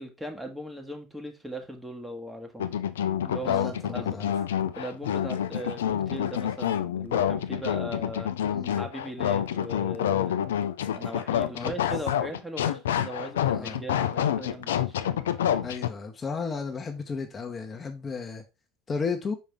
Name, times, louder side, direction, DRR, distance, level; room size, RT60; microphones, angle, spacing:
voice 1, 0.0-2.7 3.2-4.3 4.7-8.3 8.7-10.4 10.9-15.3, right 1 dB, 5° right, 1.5 m, -39 dB
sound 1, 2.6-15.9, left 10 dB, 85° left, 0.5 m, -28 dB
voice 2, 3.4-4.3 8.5-8.8 11.5-11.7 13.5-13.8 15.6-18.4 18.9-19.3, left 5 dB, 30° left, 1.1 m, -34 dB
5.3 x 5.1 x 3.6 m
hypercardioid pair, 85°, 0 cm